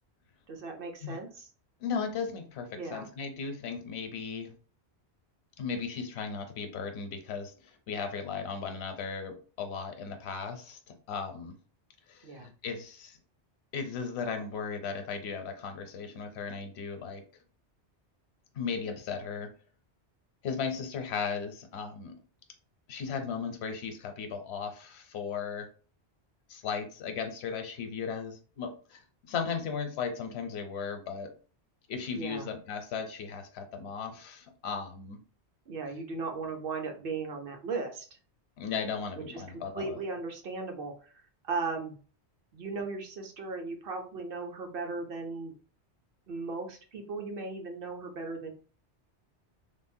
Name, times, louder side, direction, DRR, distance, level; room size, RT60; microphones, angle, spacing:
voice 1, 0.5-1.5 2.8-3.1 12.2-12.5 32.1-32.5 35.7-38.2 39.2-41.1 41.5-41.9 42.5-45.5 46.3-48.5, right 4 dB, 60° right, 3 dB, 0.8 m, -37 dB
voice 2, 1.8-4.5 5.6-10.8 11.1-11.5 12.1-13.2 13.7-17.2 18.5-19.5 20.4-22.1 22.9-25.7 26.5-31.3 31.9-35.2 38.6-40.0, left 6 dB, 75° left, 6 dB, 0.9 m, -36 dB
3.4 x 2.0 x 2.6 m, 0.38 s
omnidirectional pair, 1.1 m